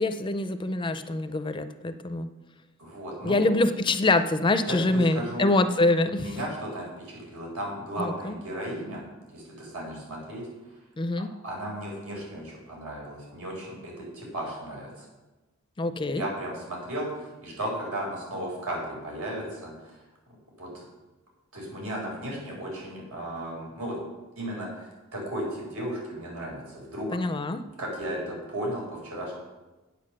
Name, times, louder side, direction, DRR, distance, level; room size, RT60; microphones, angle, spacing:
voice 1, 0.0-2.3 3.2-6.4 8.0-8.4 11.0-11.3 15.8-16.3 27.1-27.6, left 2 dB, 20° left, 10 dB, 0.4 m, -25 dB
voice 2, 2.8-3.5 4.7-5.5 6.1-9.0 9.3-10.4 11.4-15.1 16.0-20.0 20.6-20.9 21.5-24.0 24.4-27.2 27.8-29.4, right 1 dB, 90° right, -2 dB, 4.4 m, -35 dB
8.5 x 8.2 x 6.3 m, 1.1 s
head